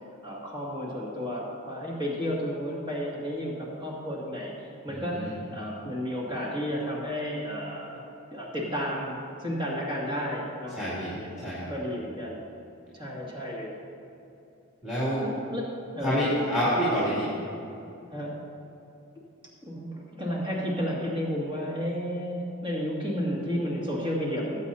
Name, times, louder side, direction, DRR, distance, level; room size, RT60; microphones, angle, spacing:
voice 1, 0.2-8.0 8.3-10.8 11.1-11.3 11.7-12.4 12.9-13.7 15.1-16.5 18.1-18.4 19.6-24.6, equal, 20° right, -5 dB, 2.2 m, -32 dB
voice 2, 4.9-5.3 10.7-11.7 14.8-15.2 16.0-17.3, equal, 5° right, -11 dB, 2.6 m, -27 dB
18.5 x 8.4 x 2.8 m, 2.7 s
head